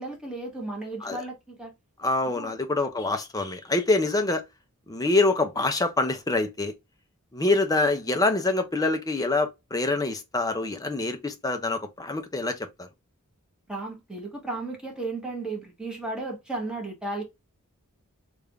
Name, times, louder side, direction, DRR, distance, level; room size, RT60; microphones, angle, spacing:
voice 1, 0.0-1.7 2.3-2.5 13.7-17.2, right 2 dB, 5° right, 1.1 m, -34 dB
voice 2, 2.0-4.4 4.9-6.7 7.3-12.9, left 2 dB, 15° left, 0.6 m, -25 dB
3.5 x 2.5 x 3.2 m
head